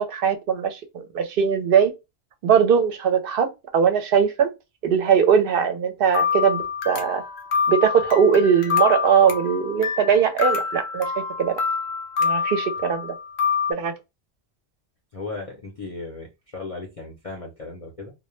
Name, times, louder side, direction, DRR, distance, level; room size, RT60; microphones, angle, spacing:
voice 1, 0.0-1.9 2.4-4.5 4.8-7.2 7.7-11.6 12.2-13.1 13.7-13.9, right 7 dB, 60° right, 0.7 m, -20 dB
sound 1, 6.1-13.7, left 6 dB, 75° left, 0.9 m, -26 dB
voice 2, 15.1-18.1, left 3 dB, 40° left, 0.6 m, -36 dB
2.2 x 2.0 x 3.0 m
omnidirectional pair, 1.1 m